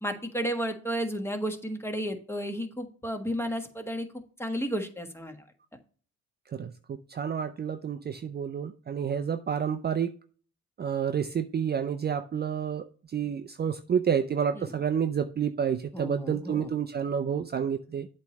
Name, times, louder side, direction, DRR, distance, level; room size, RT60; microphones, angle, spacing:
voice 1, 0.0-5.3 14.6-14.7 15.9-16.7, equal, 10° left, 1.4 m, -33 dB
voice 2, 6.5-10.1 10.8-12.8 13.1-18.1, right 7 dB, 35° right, 0.5 m, -29 dB
8.1 x 3.3 x 6.0 m
cardioid pair, 90°, 30 cm